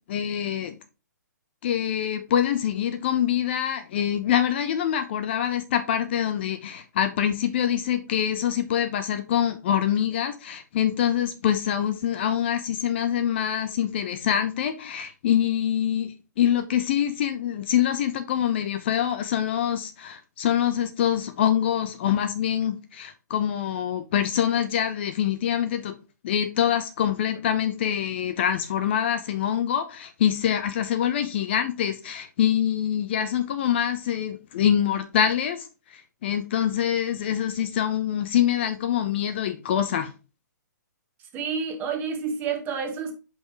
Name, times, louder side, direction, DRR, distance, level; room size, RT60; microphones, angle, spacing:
voice 1, 0.1-0.8 1.6-25.9 26.2-40.1, left 10 dB, 35° left, 0.6 m, -25 dB
voice 2, 41.3-43.1, right 6 dB, 20° right, 1.3 m, -29 dB
5.5 x 4.4 x 4.6 m
figure-of-eight pair, 125°, 10 cm